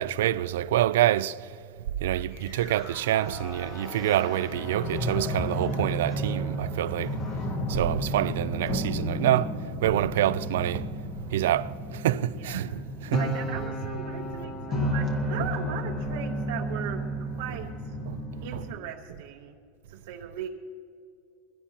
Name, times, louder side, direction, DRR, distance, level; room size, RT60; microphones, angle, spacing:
voice 1, 0.0-1.4 2.0-7.2 7.7-9.5 9.8-10.9 11.3-13.4 15.4-15.5 17.5-17.6 18.1-18.2 18.5-18.7, right 13 dB, 80° right, 0.4 m, -27 dB
sound 1, 2.3-18.7, equal, 30° left, 1.6 m, -32 dB
voice 2, 13.2-17.0 17.4-17.9 18.4-19.6 19.9-20.5, right 9 dB, 60° right, 1.0 m, -38 dB
22.5 x 16.0 x 2.9 m
supercardioid pair, 180°, 0 cm